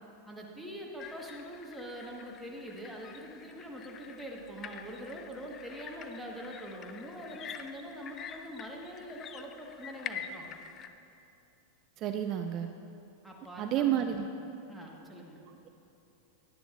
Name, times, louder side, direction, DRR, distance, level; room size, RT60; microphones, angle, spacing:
voice 1, 0.2-10.5 13.2-14.3 14.7-15.4, equal, ahead, -3 dB, 1.4 m, -44 dB
sound 1, 1.0-10.9, left 7 dB, 35° left, 0.4 m, -46 dB
voice 2, 12.0-12.7 13.6-14.3, right 11 dB, 45° right, 7 dB, 0.4 m, -30 dB
11.5 x 10.0 x 2.5 m, 2.8 s
hypercardioid pair, 105°, 0 cm